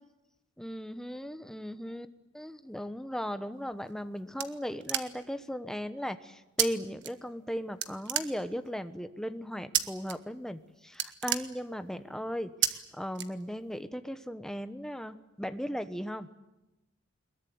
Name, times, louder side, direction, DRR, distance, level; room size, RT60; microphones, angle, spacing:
voice 1, 0.6-2.1 2.3-16.3, equal, 5° left, 10 dB, 1.1 m, -37 dB
sound 1, 3.7-5.4 6.6-6.7 7.0-7.5 7.8-8.8 9.7-10.1 10.5-10.6 10.9-12.0 12.6-12.7 13.1-13.8, right 11 dB, 65° right, 1.5 m, -31 dB
23.0 x 21.5 x 9.5 m, 1.0 s
head